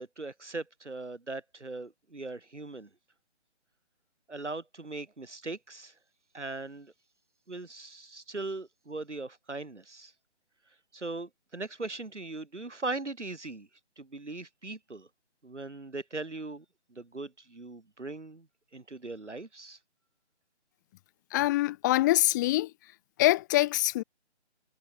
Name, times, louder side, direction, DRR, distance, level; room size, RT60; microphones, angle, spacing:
voice 1, 0.0-2.9 4.3-5.9 6.3-6.9 7.5-10.1 10.9-13.7 14.0-15.1 15.4-18.5 18.7-19.8, right 3 dB, 85° right, 7.4 m, -39 dB
voice 2, 21.3-22.7 23.2-24.0, left 17 dB, 15° left, 1.3 m, -24 dB
figure-of-eight pair, 155°, 34 cm